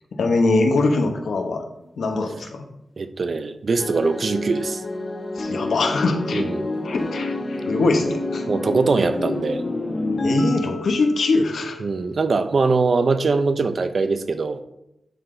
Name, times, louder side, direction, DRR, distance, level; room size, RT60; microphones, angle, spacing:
voice 1, 0.1-1.6 2.0-2.7 5.3-6.5 6.8-8.4 10.2-11.8, left 3 dB, 80° left, 4 dB, 1.0 m, -22 dB
sound 1, 1.7-1.9 3.3-3.5 3.8-5.6 5.9-9.4, equal, 5° right, 1.4 m, -44 dB
voice 2, 3.0-4.8 6.3-6.7 8.5-9.6 11.8-14.6, right 4 dB, 45° right, 10 dB, 0.5 m, -22 dB
sound 2, 3.8-12.2, left 2 dB, 40° left, 0.9 m, -28 dB
11.5 x 3.9 x 3.3 m, 0.85 s
wide cardioid pair, 175°, 0 cm